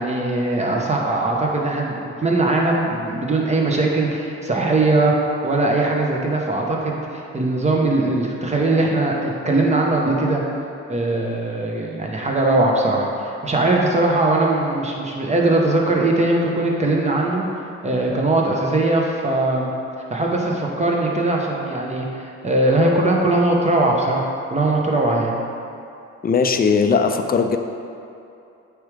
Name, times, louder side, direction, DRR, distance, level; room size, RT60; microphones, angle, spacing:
voice 1, 0.0-5.1 5.4-10.4 10.9-17.4 17.8-19.7 20.1-25.3, right 2 dB, 20° right, -1 dB, 1.1 m, -20 dB
voice 2, 26.2-27.6, left 5 dB, 30° left, 6 dB, 0.5 m, -18 dB
8.0 x 5.0 x 3.4 m, 2.7 s
cardioid pair, 90°, 30 cm